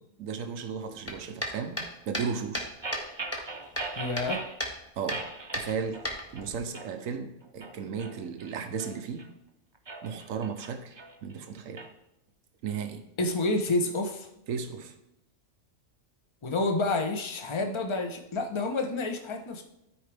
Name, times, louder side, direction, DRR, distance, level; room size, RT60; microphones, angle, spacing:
voice 1, 0.0-1.8 2.1-2.7 5.0-5.2 5.5-6.0 6.3-9.3 10.0-11.8 12.6-13.0 14.5-14.9, right 6 dB, 90° right, 7 dB, 1.2 m, -35 dB
sound 1, 1.0-3.1 3.3-4.3 4.6-4.8 5.1-5.2 5.5-6.6, equal, 10° left, 1.4 m, -34 dB
sound 2, 2.8-4.6 5.1-6.1 6.4-6.9 7.4-9.3 9.7-11.9, right 3 dB, 25° right, 0.6 m, -40 dB
voice 2, 4.0-4.4 13.2-14.3 16.4-19.6, left 2 dB, 25° left, 4 dB, 0.8 m, -29 dB
13.0 x 4.8 x 3.4 m, 0.87 s
omnidirectional pair, 1.3 m